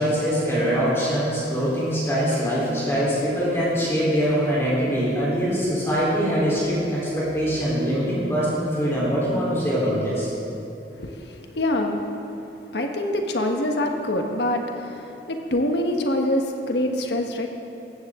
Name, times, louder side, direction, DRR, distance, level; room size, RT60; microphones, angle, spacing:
voice 1, 0.0-10.3, equal, 15° left, -8 dB, 3.8 m, -23 dB
voice 2, 11.0-12.1 12.7-17.5, left 1 dB, 75° left, 3 dB, 1.4 m, -25 dB
17.5 x 15.0 x 3.8 m, 2.7 s
head